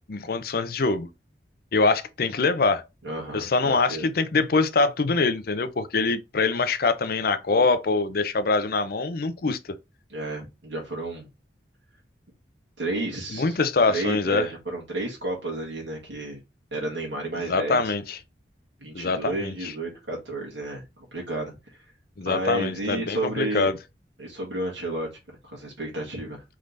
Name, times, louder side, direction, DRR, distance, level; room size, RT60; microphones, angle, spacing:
voice 1, 0.1-1.1 1.7-2.8 3.3-9.6 13.3-14.4 17.5-18.2 18.9-19.5 22.2-23.7, left 3 dB, 55° left, 0.5 m, -24 dB
voice 2, 3.0-4.1 10.1-11.3 12.8-13.6 13.9-16.4 16.7-17.8 18.8-21.9 22.2-23.7 24.2-26.4, right 2 dB, 80° right, 1.6 m, -32 dB
3.7 x 3.2 x 3.9 m
head